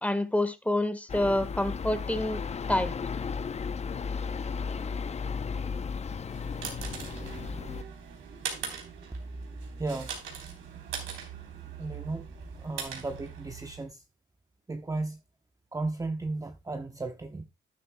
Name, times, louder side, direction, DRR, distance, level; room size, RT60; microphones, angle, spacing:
voice 1, 0.0-2.4 2.7-3.0, left 1 dB, 5° left, 1.5 m, -27 dB
sound 1, 1.1-7.8, left 5 dB, 35° left, 0.7 m, -34 dB
sound 2, 6.1-13.9, right 7 dB, 75° right, 3.7 m, -41 dB
voice 2, 9.8-10.1 11.8-12.3 12.6-14.0 14.7-15.2 15.7-17.5, right 2 dB, 15° right, 1.0 m, -34 dB
12.0 x 11.0 x 2.2 m
cardioid pair, 90°, 20 cm